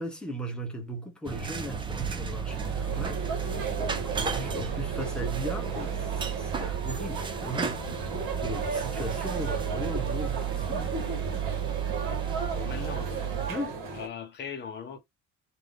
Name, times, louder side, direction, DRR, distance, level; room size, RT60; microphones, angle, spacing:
voice 1, 0.0-3.7 4.0-7.8 8.3-10.9 13.5-13.8, equal, 5° left, 0.8 m, -37 dB
sound 1, 1.2-13.5, right 8 dB, 15° right, 0.3 m, -33 dB
sound 2, 2.5-14.1, right 4 dB, 70° right, 2.2 m, -35 dB
voice 2, 12.5-13.3 13.9-15.0, left 7 dB, 30° left, 1.1 m, -39 dB
3.8 x 2.6 x 3.5 m
cardioid pair, 175°, 33 cm